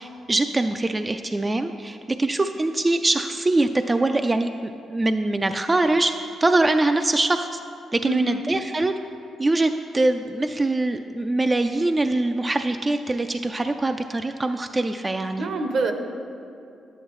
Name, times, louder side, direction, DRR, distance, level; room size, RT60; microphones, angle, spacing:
voice 1, 0.0-6.1 6.4-7.6 7.9-8.9 9.4-15.5, right 2 dB, 20° right, 6 dB, 0.3 m, -23 dB
voice 2, 8.0-8.5 15.4-15.9, right 3 dB, 65° right, 5 dB, 0.8 m, -26 dB
10.5 x 9.0 x 3.1 m, 2.5 s
cardioid pair, 85°, 0 cm